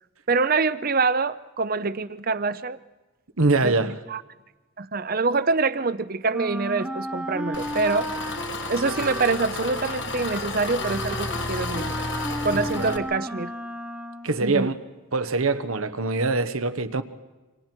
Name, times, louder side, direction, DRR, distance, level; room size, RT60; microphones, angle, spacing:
voice 1, 0.3-2.8 3.6-3.8 4.1-4.2 4.8-8.1 8.7-12.1 12.4-13.5 14.4-14.7, right 4 dB, 45° right, 0.7 m, -25 dB
voice 2, 3.4-3.9 12.5-13.0 14.2-14.7 15.1-17.0, right 3 dB, 90° right, 1.2 m, -24 dB
Wind instrument woodwind instrument, 6.3-14.5, equal, 5° right, 1.0 m, -34 dB
Engine, 7.5-13.0, left 3 dB, 60° left, 1.6 m, -32 dB
28.5 x 25.5 x 4.5 m
head